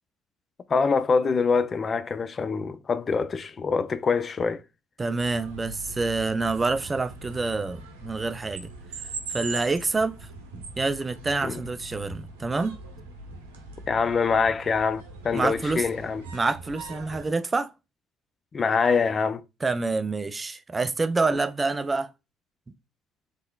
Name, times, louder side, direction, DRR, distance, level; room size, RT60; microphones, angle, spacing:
voice 1, 0.7-4.6 11.4-11.6 13.9-16.2 18.5-19.4, left 5 dB, 35° left, 0.4 m, -24 dB
voice 2, 5.0-8.7 9.3-10.2 10.8-12.8 15.3-15.9 16.3-17.7 19.6-22.1, right 3 dB, 25° right, 0.4 m, -27 dB
sound 1, 5.2-17.3, right 3 dB, 85° right, 0.8 m, -41 dB
3.6 x 3.3 x 2.2 m
hypercardioid pair, 55°, 0 cm